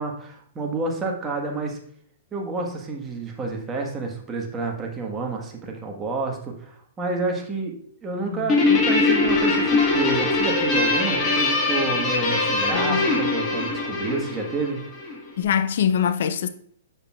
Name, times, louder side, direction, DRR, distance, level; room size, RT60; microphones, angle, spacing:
voice 1, 0.0-1.8 2.3-7.8 8.0-14.9, right 3 dB, 15° right, 1.3 m, -29 dB
Guitar, 8.5-15.2, left 3 dB, 20° left, 1.7 m, -22 dB
voice 2, 12.7-13.1 15.4-16.5, left 8 dB, 65° left, 0.5 m, -23 dB
7.4 x 6.6 x 2.4 m
hypercardioid pair, 135°, 0 cm